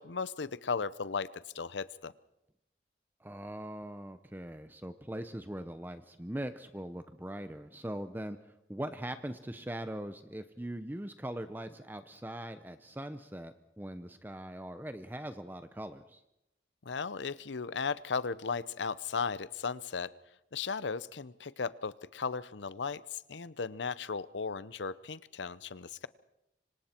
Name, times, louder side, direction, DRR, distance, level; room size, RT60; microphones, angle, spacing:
voice 1, 0.0-2.1 16.8-20.1 20.5-26.1, left 5 dB, 85° left, 17 dB, 0.7 m, -36 dB
voice 2, 3.2-16.2, right 1 dB, 10° right, 10 dB, 0.7 m, -41 dB
25.5 x 25.5 x 4.5 m, 0.84 s
head